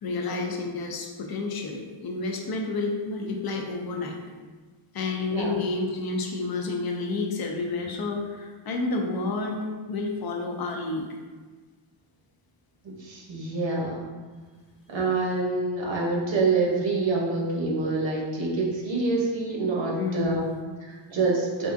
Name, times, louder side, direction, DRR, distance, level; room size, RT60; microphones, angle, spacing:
voice 1, 0.0-4.2 4.9-11.1 20.0-20.6, left 3 dB, 55° left, 2 dB, 0.5 m, -30 dB
voice 2, 12.8-14.1 14.9-20.4 20.8-21.7, right 3 dB, 70° right, -3 dB, 0.9 m, -26 dB
3.6 x 2.4 x 2.5 m, 1.4 s
wide cardioid pair, 135°, 47 cm